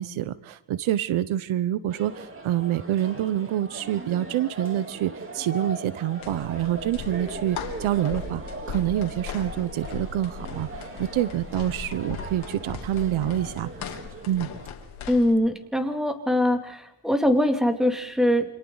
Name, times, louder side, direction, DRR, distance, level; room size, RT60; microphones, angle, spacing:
voice 1, 0.0-8.4 8.7-13.9 14.3-14.5, right 12 dB, 75° right, 16 dB, 1.0 m, -27 dB
sound 1, 1.9-14.7, right 2 dB, 25° right, 3.3 m, -40 dB
sound 2, 6.2-15.3, left 6 dB, 70° left, 3.2 m, -38 dB
voice 2, 15.1-18.5, left 1 dB, ahead, 5 dB, 2.6 m, -22 dB
29.0 x 27.0 x 4.0 m, 0.82 s
cardioid pair, 120°, 49 cm